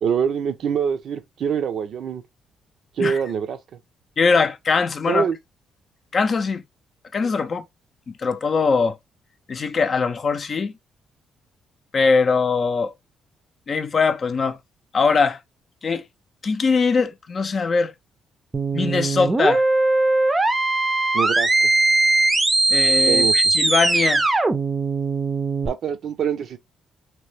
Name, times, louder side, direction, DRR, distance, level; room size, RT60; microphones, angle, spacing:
voice 1, 0.0-2.2 3.0-3.6 5.1-5.4 21.1-21.7 23.1-23.3 25.6-26.6, right 7 dB, 65° right, 0.6 m, -24 dB
voice 2, 4.2-5.3 6.1-6.6 7.1-7.7 8.1-9.0 9.5-10.7 11.9-12.9 13.7-14.6 14.9-15.4 15.8-16.0 16.4-17.9 18.7-19.6 22.7-24.2, left 4 dB, 45° left, 0.5 m, -21 dB
sound 1, 18.5-25.7, right 2 dB, 25° right, 0.6 m, -20 dB
3.1 x 3.0 x 3.2 m
cardioid pair, 90°, 0 cm